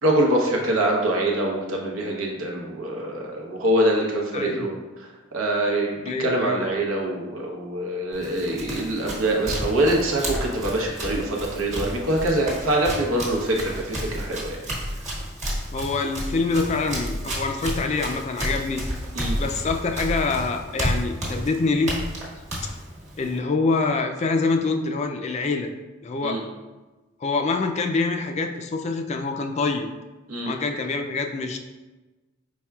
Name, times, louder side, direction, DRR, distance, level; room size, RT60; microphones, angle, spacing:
voice 1, 0.0-4.7 5.3-14.6 19.1-19.4 26.2-26.4 30.3-30.5, right 1 dB, 90° right, 0 dB, 0.9 m, -24 dB
voice 2, 4.3-4.8 6.1-6.7 15.7-18.8 19.4-21.9 22.6-22.7 23.2-25.7 26.0-26.4 27.2-29.9 30.5-31.6, left 3 dB, 35° left, 5 dB, 0.3 m, -25 dB
Run, 8.1-23.4, equal, 35° right, 1.2 m, -31 dB
4.6 x 4.3 x 2.3 m, 1.2 s
head